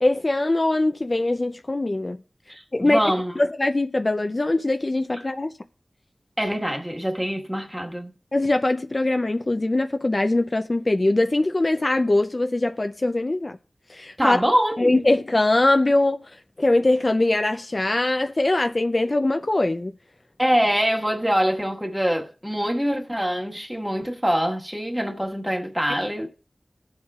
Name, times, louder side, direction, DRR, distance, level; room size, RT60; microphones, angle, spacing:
voice 1, 0.0-2.2 2.7-5.5 8.3-13.6 13.9-14.4 14.8-19.9, left 2 dB, 45° left, 0.5 m, -22 dB
voice 2, 2.5-3.3 6.4-8.1 14.2-15.0 20.4-26.3, equal, 10° right, 1.5 m, -24 dB
18.5 x 7.3 x 2.4 m
wide cardioid pair, 50°, 0 cm